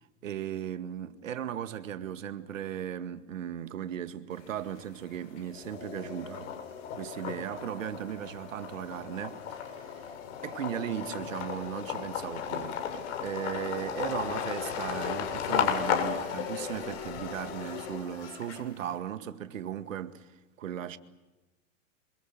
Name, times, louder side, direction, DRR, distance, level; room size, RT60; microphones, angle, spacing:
voice 1, 0.2-6.5 6.9-10.1 10.4-20.3 20.6-21.0, right 10 dB, 75° right, 2.1 m, -37 dB
sound 1, 4.3-5.0 5.4-18.9, left 8 dB, 60° left, 7.2 m, -35 dB
27.5 x 23.5 x 7.4 m
hypercardioid pair, 115°, 39 cm